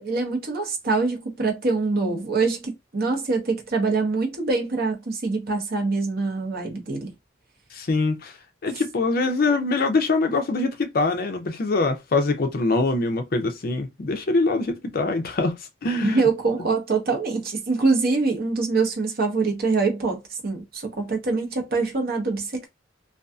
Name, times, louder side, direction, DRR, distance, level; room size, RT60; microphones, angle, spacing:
voice 1, 0.0-7.1 16.0-22.7, right 3 dB, 50° right, 0.8 m, -24 dB
voice 2, 7.7-8.3 8.6-15.6 15.8-16.2, left 3 dB, 50° left, 0.5 m, -23 dB
2.5 x 2.3 x 2.3 m
head